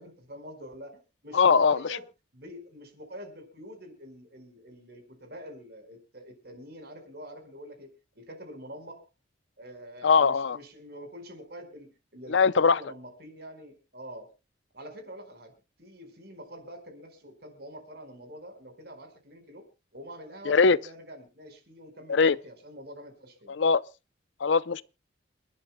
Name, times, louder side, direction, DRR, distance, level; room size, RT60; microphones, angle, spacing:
voice 1, 0.0-2.0 2.3-7.9 8.1-9.0 9.6-14.3 14.7-15.5 15.8-19.7 19.9-23.5, equal, 55° right, 4.7 m, -45 dB
voice 2, 1.3-1.8 10.0-10.6 12.3-12.8 20.5-20.8 22.1-22.4 23.5-23.8 24.4-24.8, left 5 dB, 75° left, 0.6 m, -21 dB
28.5 x 12.0 x 2.2 m
head